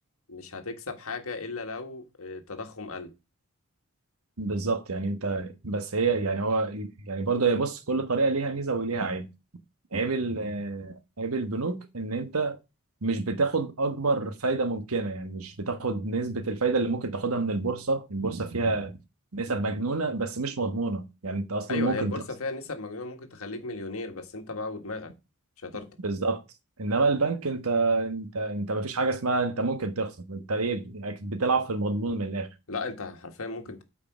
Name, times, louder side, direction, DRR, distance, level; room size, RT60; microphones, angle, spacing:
voice 1, 0.3-3.1 21.7-25.1 25.6-25.9 32.7-33.8, left 3 dB, 70° left, 1.7 m, -36 dB
voice 2, 4.4-9.3 9.9-12.6 13.0-19.0 19.3-22.2 26.0-26.4 26.8-32.5, right 3 dB, 75° right, 1.3 m, -28 dB
8.8 x 5.0 x 6.1 m
head